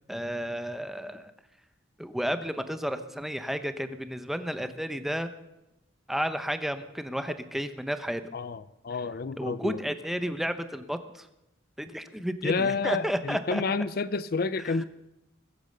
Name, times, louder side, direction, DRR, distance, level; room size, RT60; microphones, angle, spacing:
voice 1, 0.1-1.3 2.0-5.3 6.1-8.2 9.4-11.3 11.8-13.6 14.6-14.8, equal, ahead, 9 dB, 0.9 m, -32 dB
voice 2, 8.3-9.8 12.4-14.8, left 4 dB, 50° left, 16 dB, 0.5 m, -29 dB
22.0 x 8.7 x 6.8 m, 0.88 s
head